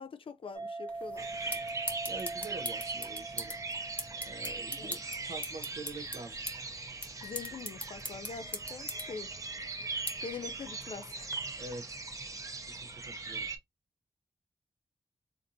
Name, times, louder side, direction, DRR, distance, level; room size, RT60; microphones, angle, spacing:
voice 1, 0.0-1.6 4.8-5.0 7.2-9.3 10.2-11.3, left 5 dB, 60° left, 0.5 m, -44 dB
sound 1, 0.5-5.3, right 3 dB, 45° right, 1.3 m, -43 dB
sound 2, 0.9-11.4, left 1 dB, 15° left, 1.0 m, -43 dB
sound 3, 1.2-13.6, right 3 dB, 30° right, 0.7 m, -40 dB
voice 2, 2.1-3.6 4.1-5.0 5.3-6.4 11.5-11.9 13.1-13.5, right 3 dB, 85° right, 0.7 m, -45 dB
3.9 x 2.5 x 2.7 m
wide cardioid pair, 140°, 10 cm